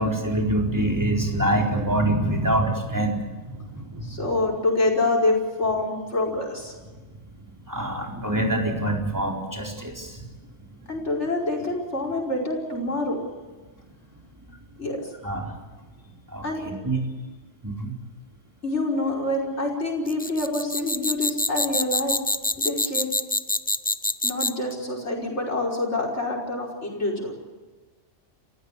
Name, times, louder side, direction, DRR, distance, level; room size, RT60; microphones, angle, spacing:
voice 1, 0.0-4.2 7.7-10.2 14.5-14.6 15.2-15.6 16.3-17.1 17.6-17.9, right 1 dB, 15° right, 1 dB, 4.3 m, -25 dB
voice 2, 4.0-6.7 10.9-13.2 14.8-15.1 16.4-16.6 18.6-22.2 22.6-23.1 24.2-27.3, left 2 dB, 65° left, -1 dB, 5.7 m, -26 dB
sound 1, 20.1-24.7, left 2 dB, 15° left, 0.3 m, -26 dB
29.5 x 16.0 x 8.4 m, 1.3 s
omnidirectional pair, 1.3 m